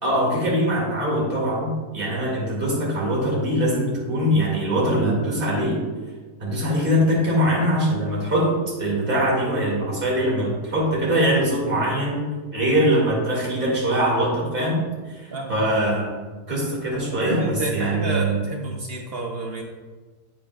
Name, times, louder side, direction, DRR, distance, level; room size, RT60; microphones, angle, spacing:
voice 1, 0.0-5.8 6.4-8.5 8.8-12.3 12.5-14.8 15.1-16.1 16.5-18.4, equal, 30° right, -4 dB, 2.3 m, -22 dB
voice 2, 17.1-19.6, right 2 dB, 55° right, 1 dB, 0.7 m, -29 dB
8.7 x 8.4 x 2.3 m, 1.4 s
omnidirectional pair, 1.8 m